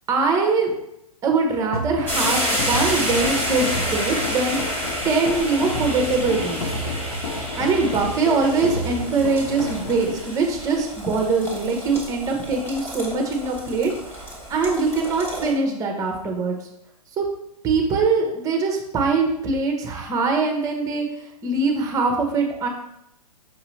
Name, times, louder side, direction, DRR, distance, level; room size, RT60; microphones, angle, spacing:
voice 1, 0.1-0.7 1.2-6.7 7.6-14.2 14.5-16.6 17.2-17.3 17.6-22.7, right 4 dB, 15° right, 3 dB, 0.8 m, -22 dB
sound 1, 1.7-10.2, left 2 dB, 65° left, 0.9 m, -31 dB
sound 2, 2.1-15.5, equal, 10° left, 1.1 m, -29 dB
5.4 x 2.8 x 3.1 m, 0.80 s
hypercardioid pair, 125°, 20 cm